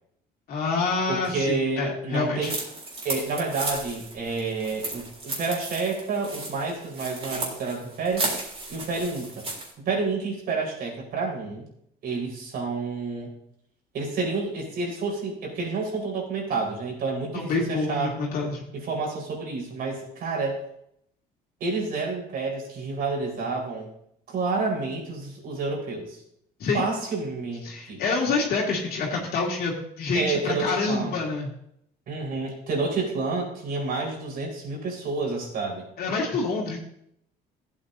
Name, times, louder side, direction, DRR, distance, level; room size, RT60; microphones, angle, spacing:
voice 1, 0.5-2.5 17.3-18.6 26.6-26.8 27.6-31.5 36.0-36.8, left 4 dB, 65° left, -2 dB, 2.5 m, -27 dB
voice 2, 1.1-2.6 3.0-8.3 8.7-9.4 9.8-11.6 12.0-13.3 13.9-18.1 18.7-20.6 21.6-23.9 24.3-26.2 26.7-28.0 30.1-31.1 32.1-35.9, right 3 dB, 65° right, -1 dB, 4.7 m, -29 dB
sound 1, 2.4-9.7, right 2 dB, 35° right, 3.6 m, -34 dB
15.0 x 8.8 x 2.8 m, 0.72 s
cardioid pair, 110°, 17 cm